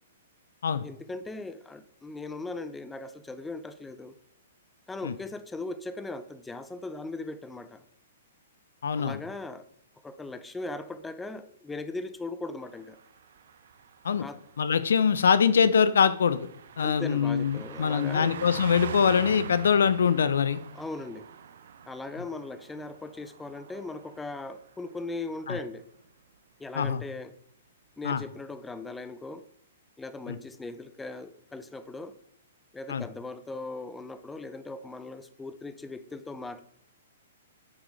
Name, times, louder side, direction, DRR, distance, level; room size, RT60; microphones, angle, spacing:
voice 1, 0.8-4.1 4.9-7.8 9.0-9.7 10.0-13.0 14.2-14.4 16.8-18.4 20.7-21.3 21.9-25.8 26.6-27.3 28.0-29.4 30.0-32.2 32.7-36.6, left 2 dB, 10° left, 12 dB, 0.7 m, -39 dB
voice 2, 8.8-9.2 14.0-14.3 14.6-16.5 16.8-20.6 25.5-25.6 26.7-27.0 28.0-28.2 30.3-30.4 32.9-33.0, left 6 dB, 70° left, 15 dB, 0.7 m, -23 dB
Car passing by, 12.7-24.6 24.9-25.1, right 7 dB, 65° right, 0.8 m, -44 dB
9.9 x 8.1 x 3.3 m, 0.70 s
hypercardioid pair, 120°, 0 cm